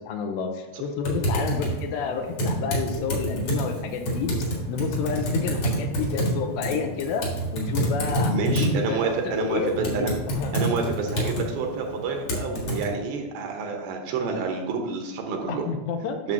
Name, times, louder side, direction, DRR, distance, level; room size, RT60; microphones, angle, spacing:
voice 1, 0.0-4.3 4.7-10.5 15.5-16.2, left 5 dB, 80° left, 4 dB, 2.8 m, -30 dB
Typing, 1.0-12.9, right 1 dB, 55° left, 1.8 m, -28 dB
voice 2, 8.3-10.1 10.5-15.6 16.2-16.3, right 4 dB, 75° right, 2 dB, 3.0 m, -28 dB
10.5 x 6.6 x 2.8 m, 1.1 s
omnidirectional pair, 5.2 m